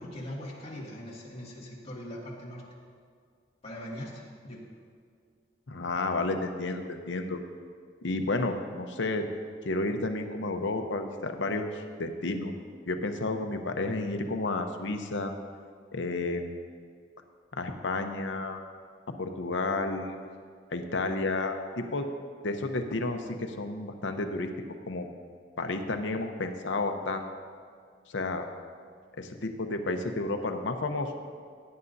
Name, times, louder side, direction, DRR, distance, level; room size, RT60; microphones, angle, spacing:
voice 1, 0.0-2.6 3.6-4.7, equal, 35° left, -5 dB, 2.2 m, -41 dB
voice 2, 5.7-7.4 8.0-9.3 9.6-12.5 12.9-15.3 15.9-16.5 17.6-18.6 19.2-20.2 20.7-22.1 22.4-24.5 24.9-25.1 25.6-27.2 28.1-28.5 29.2-31.1, left 2 dB, 75° left, 6 dB, 0.8 m, -31 dB
17.0 x 9.6 x 2.7 m, 2.1 s
head